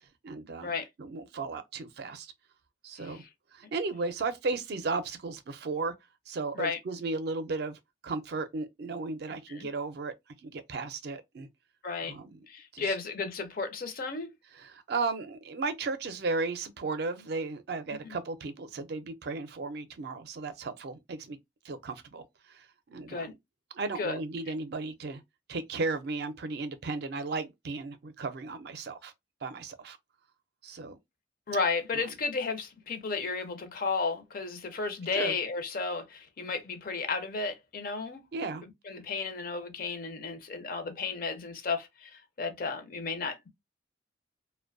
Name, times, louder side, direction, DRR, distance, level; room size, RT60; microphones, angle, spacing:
voice 1, 0.2-2.3 2.8-3.2 3.5-5.9 6.3-10.1 10.4-11.5 12.0-12.5 12.7-12.9 14.5-21.4 21.6-23.4 23.7-25.2 25.5-29.1 29.4-30.0 30.6-31.0 31.9-32.0 35.1-35.4 38.3-38.6, right 3 dB, 60° right, 0.4 m, -35 dB
voice 2, 11.8-12.2 12.5-14.3 18.0-18.2 23.1-23.3 24.0-24.2 31.5-38.2 38.9-43.5, left 4 dB, 50° left, 0.5 m, -33 dB
2.6 x 2.1 x 2.5 m
head